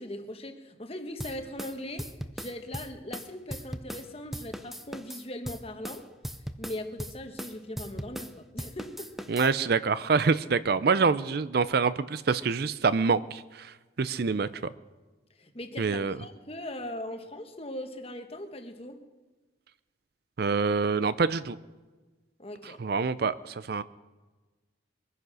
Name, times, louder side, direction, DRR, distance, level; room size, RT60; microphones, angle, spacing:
voice 1, 0.0-2.1 2.3-6.1 6.6-9.3 15.4-19.0 22.4-22.8, left 1 dB, 30° left, 6 dB, 1.3 m, -40 dB
sound 1, 1.2-4.1 4.3-8.3 8.6-9.5, equal, ahead, 0.5 m, -38 dB
voice 2, 9.3-13.7 14.0-14.5 15.8-16.2 20.4-21.6 22.8-23.8, right 4 dB, 55° right, 16 dB, 0.5 m, -26 dB
22.5 x 9.9 x 6.3 m, 1.3 s
head